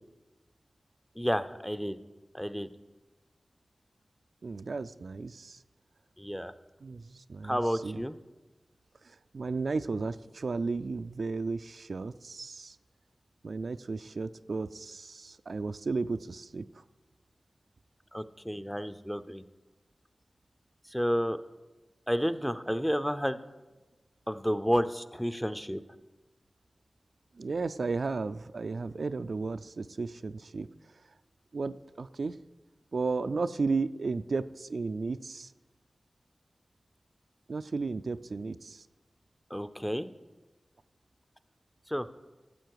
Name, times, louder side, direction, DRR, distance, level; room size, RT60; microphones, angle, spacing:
voice 1, 1.2-2.0 2.3-2.7 6.2-6.5 7.4-8.2 18.1-19.4 20.9-21.4 22.1-23.4 24.3-25.8 39.5-40.1 41.9-42.1, equal, 5° left, 12 dB, 0.5 m, -30 dB
voice 2, 4.4-5.6 6.8-8.0 9.0-12.8 13.4-16.8 27.4-30.7 31.5-32.4 32.9-35.5 37.5-38.8, right 4 dB, 80° right, 11 dB, 0.3 m, -34 dB
14.0 x 7.5 x 4.7 m, 1.2 s
wide cardioid pair, 60°, 0 cm